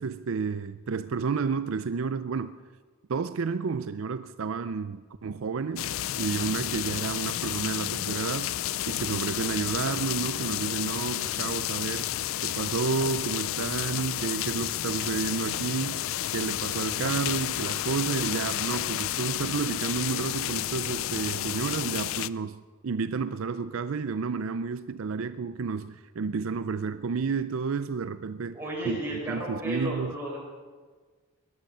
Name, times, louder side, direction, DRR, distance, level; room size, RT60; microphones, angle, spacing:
voice 1, 0.0-2.6 3.1-8.6 8.9-12.1 12.4-28.6 28.8-29.0 29.3-30.2, right 5 dB, 70° right, 0.5 m, -31 dB
sound 1, 5.8-22.3, left 13 dB, 70° left, 0.4 m, -31 dB
voice 2, 28.5-30.4, right 1 dB, 10° right, 5.0 m, -33 dB
19.0 x 12.0 x 5.5 m
head